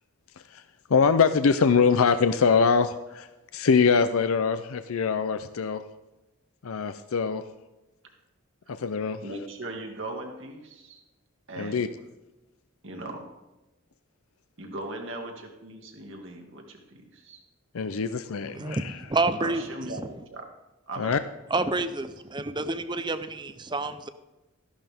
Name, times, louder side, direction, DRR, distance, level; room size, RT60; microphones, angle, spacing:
voice 1, 0.9-3.3 3.5-5.8 6.6-7.4 8.8-9.2 11.6-11.9 17.7-19.0 21.0-21.2, left 5 dB, 80° left, 10 dB, 0.5 m, -23 dB
voice 2, 9.2-11.0 11.5-11.9 12.8-13.3 14.6-17.4 19.4-20.4 20.9-21.1, right 2 dB, 60° right, 2 dB, 2.1 m, -38 dB
voice 3, 18.5-19.6 21.5-24.1, right 2 dB, 20° right, 11 dB, 0.6 m, -28 dB
14.0 x 11.5 x 3.6 m, 1.0 s
head